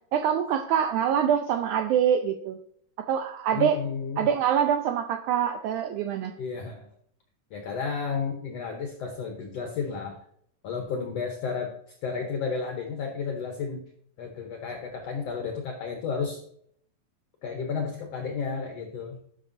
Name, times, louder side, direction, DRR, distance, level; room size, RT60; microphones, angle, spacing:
voice 1, 0.1-2.6 3.1-3.8 4.2-6.3, right 9 dB, 85° right, 6 dB, 1.8 m, -25 dB
voice 2, 3.5-4.3 6.4-6.9 7.5-10.2 10.6-11.7 12.0-13.8 14.2-16.4 17.4-19.2, left 5 dB, 75° left, 3 dB, 1.4 m, -32 dB
11.0 x 6.1 x 2.6 m, 0.66 s
omnidirectional pair, 4.1 m